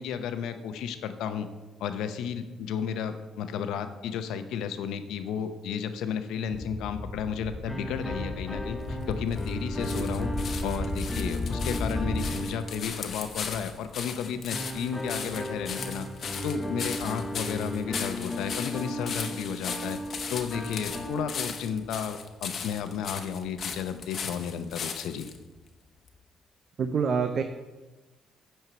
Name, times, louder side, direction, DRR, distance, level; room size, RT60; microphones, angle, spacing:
voice 1, 0.0-1.5 1.8-10.3 10.6-16.1 16.4-20.0 20.3-25.3, left 7 dB, 90° left, 9 dB, 0.8 m, -33 dB
sound 1, 6.5-12.4, left 2 dB, 30° left, 1.5 m, -34 dB
sound 2, 7.7-13.5 14.5-21.9, equal, 15° left, 1.1 m, -36 dB
sound 3, 8.8-25.4 26.1-26.2, left 6 dB, 55° left, 1.0 m, -38 dB
voice 2, 26.8-27.4, right 6 dB, 55° right, 7 dB, 0.7 m, -26 dB
9.2 x 4.6 x 6.8 m, 1.1 s
cardioid pair, 90°, 0 cm